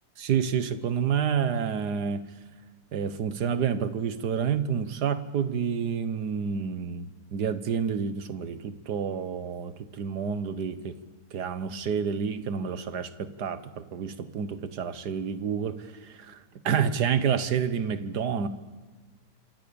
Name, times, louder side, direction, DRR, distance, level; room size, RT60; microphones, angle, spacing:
voice 1, 0.2-2.2 2.9-7.1 7.3-11.0 11.3-18.5, right 7 dB, 85° right, 13 dB, 1.8 m, -29 dB
27.0 x 25.5 x 7.0 m, 1.4 s
omnidirectional pair, 1.7 m